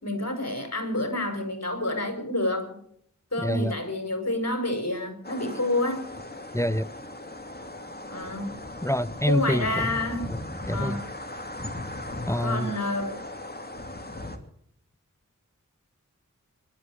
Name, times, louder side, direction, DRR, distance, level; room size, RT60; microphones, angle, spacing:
voice 1, 0.0-2.8 3.3-6.1 8.1-8.6 9.3-10.3 10.7-11.1 12.4-13.2, left 1 dB, 55° left, 5.3 m, -28 dB
voice 2, 3.4-3.7 6.5-6.9 8.8-10.0 10.3-10.4 10.7-11.0 12.3-12.7, left 1 dB, 10° left, 0.7 m, -26 dB
sound 1, 5.2-14.4, left 1 dB, 30° left, 2.7 m, -38 dB
25.0 x 11.5 x 4.9 m
wide cardioid pair, 40°, 32 cm